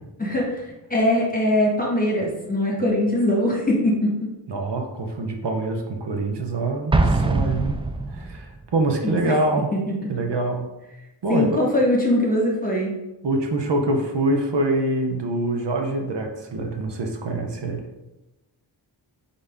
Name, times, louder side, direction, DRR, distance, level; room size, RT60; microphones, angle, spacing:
voice 1, 0.2-0.6 0.9-4.3 9.0-9.2 9.7-10.1 11.3-13.0, left 1 dB, 20° left, -3 dB, 1.3 m, -22 dB
voice 2, 4.5-7.8 8.1-9.7 10.1-10.7 11.2-11.6 13.2-17.8, right 2 dB, 65° right, 3 dB, 0.9 m, -25 dB
Explosion, 6.9-8.6, right 2 dB, 15° right, 0.3 m, -22 dB
4.0 x 3.4 x 3.5 m, 1.0 s
cardioid pair, 45°, 45 cm